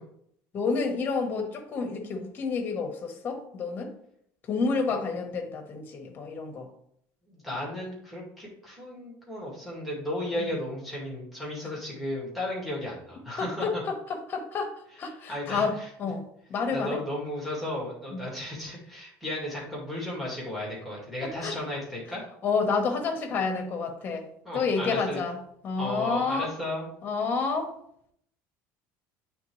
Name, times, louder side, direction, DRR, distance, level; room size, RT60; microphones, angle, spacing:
voice 1, 0.5-3.9 4.5-6.7 10.4-10.5 13.4-16.2 16.5-17.0 18.1-18.2 21.2-21.5 22.4-24.3 24.5-25.4 25.6-26.5 27.0-27.7, left 4 dB, 30° left, 3 dB, 1.1 m, -29 dB
voice 2, 7.3-13.8 15.1-16.1 16.7-22.2 24.4-25.2 25.8-26.9, left 1 dB, ahead, -5 dB, 2.0 m, -34 dB
8.9 x 3.4 x 3.2 m, 0.69 s
cardioid pair, 155°, 7 cm